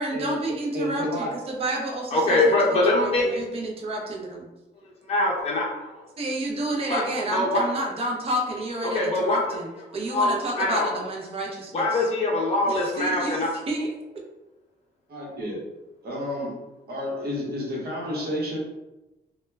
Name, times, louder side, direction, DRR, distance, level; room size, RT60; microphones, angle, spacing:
voice 1, 0.0-4.5 6.2-12.1 12.7-14.2, right 1 dB, 35° right, -1 dB, 0.5 m, -30 dB
voice 2, 0.7-1.3 15.1-15.6 16.0-16.6 16.9-18.6, left 1 dB, 60° right, -3 dB, 0.9 m, -30 dB
voice 3, 2.1-3.2 5.1-5.7 6.9-7.0 7.3-7.6 8.8-9.4 10.1-10.9 11.7-13.5, left 2 dB, 35° left, -3 dB, 0.6 m, -23 dB
2.2 x 2.1 x 3.2 m, 1.0 s
cardioid pair, 145°, 18 cm